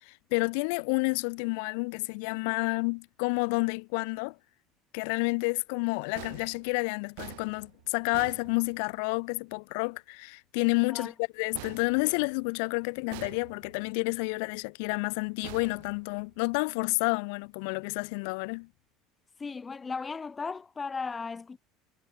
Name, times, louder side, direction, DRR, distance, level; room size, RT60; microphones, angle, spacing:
voice 1, 0.0-4.3 4.9-18.7, left 33 dB, 80° left, 3.2 m, -30 dB
sound 1, 6.2-9.2 11.5-12.6 13.1-13.9 15.4-16.5, right 28 dB, 85° right, 4.4 m, -47 dB
voice 2, 19.4-21.6, left 4 dB, 20° left, 1.3 m, -36 dB
cardioid pair, 140°, 0 cm